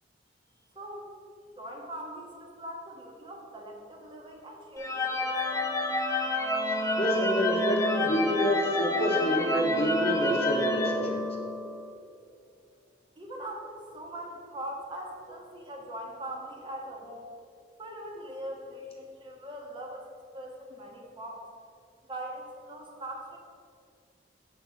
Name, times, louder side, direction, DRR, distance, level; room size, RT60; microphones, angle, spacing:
voice 1, 0.7-1.1 1.6-5.8 13.2-17.3 17.8-20.1 20.3-21.4 22.1-23.4, right 1 dB, 25° right, 0 dB, 0.9 m, -41 dB
sound 1, 4.8-11.8, left 1 dB, 15° left, 0.6 m, -29 dB
voice 2, 7.0-11.2, equal, 30° left, 0 dB, 0.9 m, -28 dB
6.0 x 5.3 x 5.6 m, 2.3 s
head